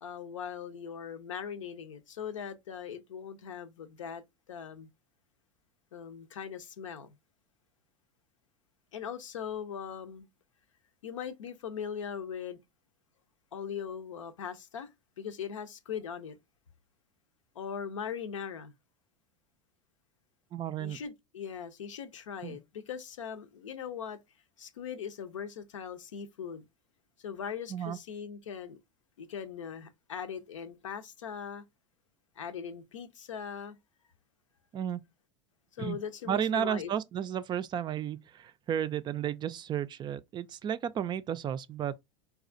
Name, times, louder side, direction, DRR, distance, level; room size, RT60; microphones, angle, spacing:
voice 1, 0.0-4.2 4.5-4.9 5.9-7.1 8.9-10.3 11.0-12.6 13.5-14.9 15.2-16.4 17.5-18.7 20.8-24.2 24.6-26.7 27.2-28.8 29.2-31.6 32.4-33.8 35.7-36.9, left 7 dB, 90° left, 0.6 m, -40 dB
voice 2, 20.5-21.0 22.4-22.6 27.7-28.0 34.7-35.0 35.8-36.0 36.3-41.9, right 9 dB, 30° right, 0.3 m, -33 dB
4.1 x 2.3 x 2.5 m
hypercardioid pair, 95°, 16 cm